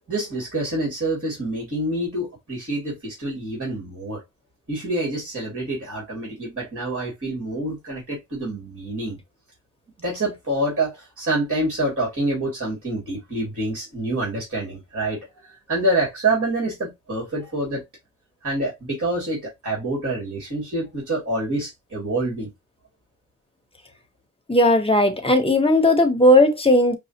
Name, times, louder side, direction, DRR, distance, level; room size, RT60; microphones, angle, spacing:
voice 1, 0.1-4.2 4.7-9.2 10.0-15.2 15.7-17.8 18.4-22.5, right 2 dB, 45° right, 2.6 m, -26 dB
voice 2, 24.5-27.0, left 1 dB, 20° left, 1.1 m, -16 dB
5.4 x 2.5 x 2.9 m
wide cardioid pair, 85°, 31 cm